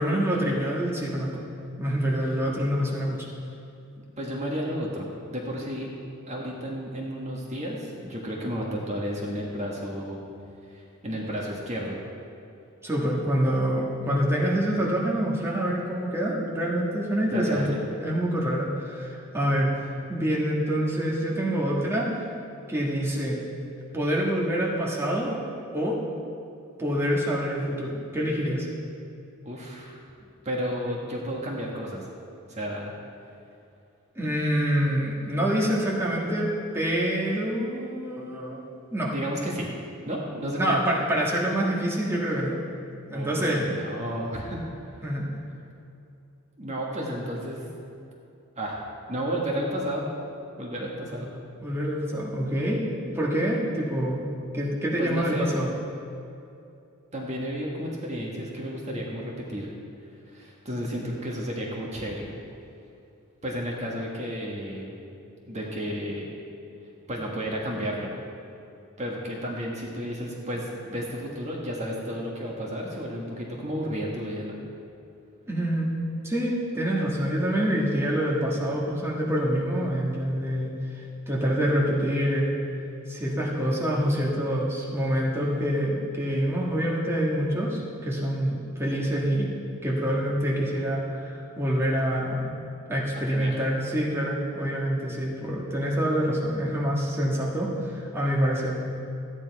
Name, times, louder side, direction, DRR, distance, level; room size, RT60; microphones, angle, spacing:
voice 1, 0.0-1.4 1.8-3.3 12.8-19.7 20.1-22.2 22.7-23.4 23.9-25.4 25.7-26.0 26.8-28.7 34.1-36.5 36.7-39.1 40.6-42.6 43.1-43.7 45.0-45.2 51.6-52.8 53.1-55.7 75.5-75.9 76.2-82.5 83.1-89.5 89.8-92.4 92.9-98.8, equal, 10° right, -4 dB, 1.6 m, -26 dB
voice 2, 4.0-5.9 6.3-10.2 10.7-12.0 17.3-17.8 29.4-30.0 30.4-32.1 32.5-32.9 39.1-39.7 40.1-40.8 43.1-44.6 46.6-47.7 48.6-48.8 49.1-50.1 50.6-51.3 55.0-55.6 57.1-59.7 60.3-62.3 63.4-65.0 65.5-66.3 67.1-68.1 69.0-74.6 93.3-93.6, equal, 35° right, -2 dB, 1.5 m, -32 dB
13.5 x 9.5 x 4.7 m, 2.7 s
head